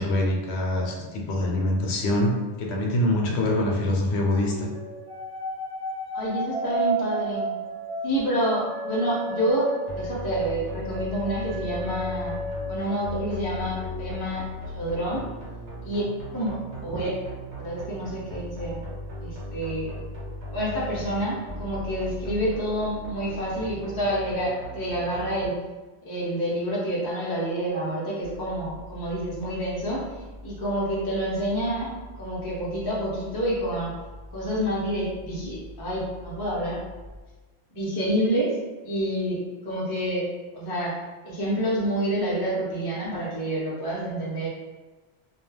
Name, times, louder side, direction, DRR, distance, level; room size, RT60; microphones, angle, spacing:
voice 1, 0.0-4.7, left 1 dB, 75° left, 0 dB, 0.8 m, -24 dB
sound 1, 4.3-13.4 13.7-14.0, right 2 dB, 65° right, 1.0 m, -33 dB
voice 2, 6.1-7.5 8.0-12.4 12.7-14.4 14.7-15.3 15.8-16.0 16.3-17.1 17.6-18.8 19.2-19.9 20.5-25.5 26.0-30.0 30.4-31.9 32.2-33.9 34.3-36.8 37.7-38.6 38.8-39.4 39.6-40.3 40.5-40.9 41.2-44.5, right 1 dB, 30° left, -6 dB, 0.5 m, -28 dB
sound 2, 9.9-25.5, left 1 dB, 85° right, 1.2 m, -37 dB
sound 3, 28.2-37.2, left 1 dB, 30° right, 0.3 m, -44 dB
2.3 x 2.2 x 3.2 m, 1.2 s
omnidirectional pair, 1.1 m